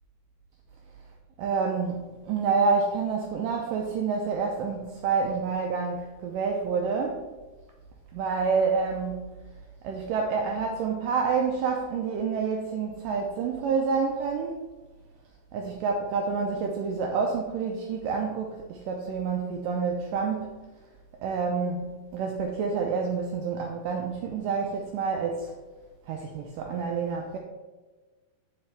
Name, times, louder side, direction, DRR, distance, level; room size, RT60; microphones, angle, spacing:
voice 1, 1.4-7.3 8.1-9.3 9.8-14.6 15.5-20.6 21.2-21.7 22.1-25.5 26.1-27.4, right 5 dB, 90° right, 1 dB, 1.9 m, -28 dB
7.1 x 6.6 x 3.4 m, 1.2 s
omnidirectional pair, 4.5 m